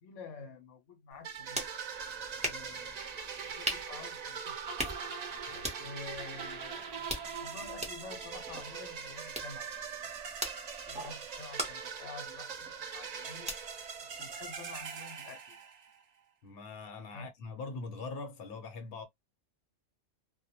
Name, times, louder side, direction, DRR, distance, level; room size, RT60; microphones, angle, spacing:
voice 1, 0.0-1.7 2.4-3.3 3.5-4.9 5.7-9.8 10.9-13.6 14.0-15.7 17.1-17.3, left 4 dB, 80° left, 0.9 m, -49 dB
Carrots snapping, 1.1-14.8, right 1 dB, 5° right, 0.6 m, -43 dB
sound 1, 1.2-16.0, right 6 dB, 80° right, 0.3 m, -42 dB
voice 2, 16.4-19.0, left 3 dB, 55° left, 0.9 m, -42 dB
2.2 x 2.1 x 2.7 m
omnidirectional pair, 1.3 m